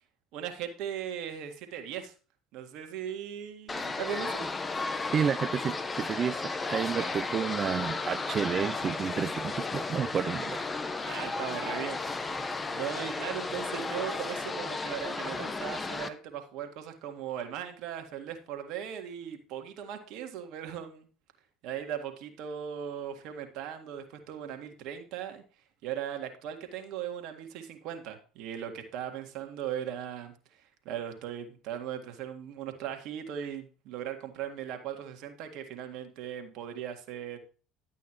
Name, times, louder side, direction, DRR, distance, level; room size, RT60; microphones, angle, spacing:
voice 1, 0.3-2.1 2.5-4.4 6.9-7.1 11.0-12.4 12.7-21.1 21.6-25.4 25.8-37.4, right 9 dB, 65° right, 1.8 m, -38 dB
sound 1, 3.7-16.1, left 3 dB, 25° left, 1.0 m, -34 dB
voice 2, 5.1-10.6, right 7 dB, 40° right, 0.3 m, -31 dB
11.5 x 8.3 x 3.0 m
hypercardioid pair, 70°, 0 cm